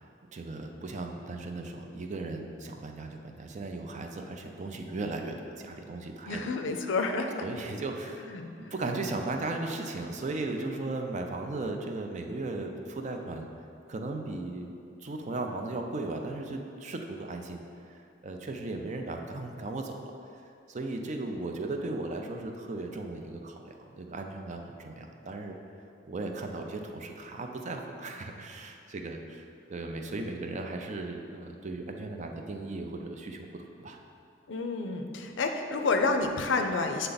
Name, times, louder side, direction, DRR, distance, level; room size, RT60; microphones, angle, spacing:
voice 1, 0.3-6.5 7.4-8.3 8.6-13.5 13.9-14.7 15.0-20.1 20.7-25.6 26.0-29.4 29.7-34.0, right 2 dB, 40° right, 3 dB, 0.5 m, -36 dB
voice 2, 6.3-7.4 8.3-8.5 34.5-37.1, left 3 dB, 75° left, 5 dB, 0.5 m, -29 dB
7.9 x 3.4 x 4.0 m, 2.5 s
head